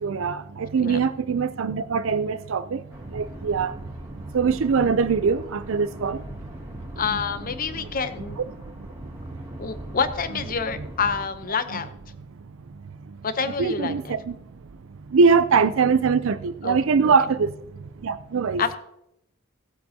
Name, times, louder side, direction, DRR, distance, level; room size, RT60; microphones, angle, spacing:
voice 1, 0.0-2.8 3.1-3.7 4.3-6.2 7.1-7.2 7.8-7.9 8.2-8.4 13.6-14.3 15.1-17.5 18.0-18.6, right 5 dB, 70° right, 0.5 m, -22 dB
sound 1, 2.9-11.3, right 1 dB, 15° right, 2.6 m, -40 dB
voice 2, 7.0-8.4 9.6-11.9 13.2-14.1 16.6-17.1 18.6-18.8, left 5 dB, 45° left, 0.8 m, -28 dB
18.5 x 8.3 x 2.8 m
head